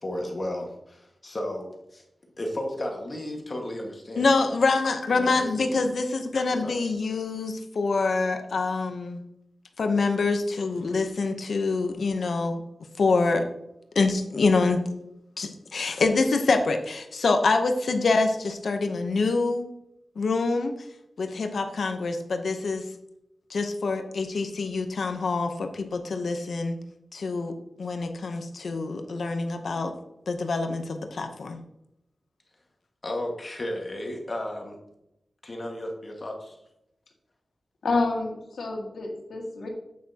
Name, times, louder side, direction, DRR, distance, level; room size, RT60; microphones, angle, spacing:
voice 1, 0.0-2.0 2.4-4.3 5.1-5.9 6.5-6.7 33.0-34.8 35.4-36.6, left 1 dB, 35° left, 0 dB, 1.6 m, -34 dB
voice 2, 4.2-9.2 9.8-12.6 13.0-13.5 13.9-14.8 15.4-19.6 20.2-20.7 21.2-22.8 23.5-26.8 27.1-27.5 27.8-29.9 30.3-31.6, left 3 dB, 70° left, 6 dB, 0.8 m, -25 dB
voice 3, 37.8-39.7, left 3 dB, 90° left, 0 dB, 1.9 m, -28 dB
8.4 x 8.4 x 2.8 m, 0.84 s
wide cardioid pair, 140°, 0 cm